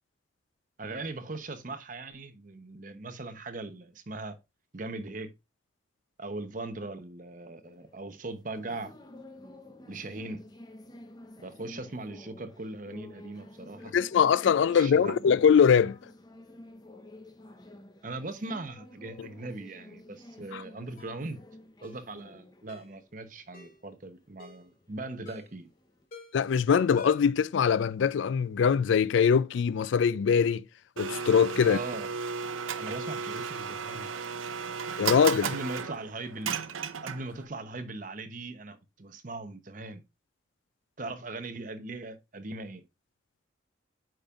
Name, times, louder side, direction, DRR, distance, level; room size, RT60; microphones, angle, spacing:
voice 1, 0.8-4.4 4.7-5.3 6.2-8.9 9.9-10.4 11.4-13.9 14.7-15.2 18.0-21.4 21.8-25.7 31.6-32.1 32.8-34.3 35.4-36.5 37.0-40.0 41.0-42.8, right 2 dB, 40° right, 0.8 m, -39 dB
sound 1, 7.6-26.1, left 1 dB, 20° left, 0.7 m, -51 dB
voice 2, 13.9-16.0 20.5-20.6 26.3-30.6 31.0-31.8 35.0-35.5, left 7 dB, 70° left, 0.3 m, -22 dB
Ringtone, 21.0-21.2 21.8-22.1 22.7-22.9 23.5-23.8 24.4-24.7 25.3-25.6 26.1-26.5 27.0-27.4 27.7-27.8, left 5 dB, 45° left, 2.6 m, -48 dB
Domestic sounds home sounds, 31.0-37.5, right 6 dB, 85° right, 0.6 m, -34 dB
8.9 x 5.3 x 2.4 m
head